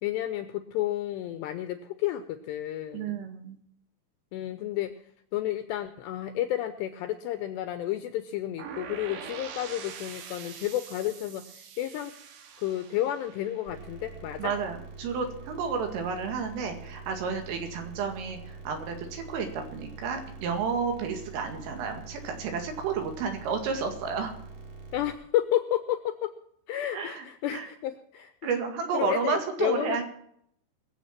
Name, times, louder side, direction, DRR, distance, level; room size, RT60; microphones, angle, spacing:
voice 1, 0.0-3.3 4.3-4.9 5.3-12.1 12.6-14.5 24.9-26.3 26.7-28.3 28.9-30.0, left 12 dB, 80° left, 10 dB, 2.5 m, -31 dB
voice 2, 2.9-3.6 14.4-24.3 26.9-27.3 27.5-27.7 28.4-30.0, right 5 dB, 85° right, 5 dB, 4.7 m, -31 dB
sound 1, 8.6-14.5, right 7 dB, 70° right, 2.2 m, -44 dB
sound 2, 13.7-25.1, right 3 dB, 45° right, 3.9 m, -45 dB
22.5 x 7.9 x 5.9 m, 0.67 s
omnidirectional pair, 5.7 m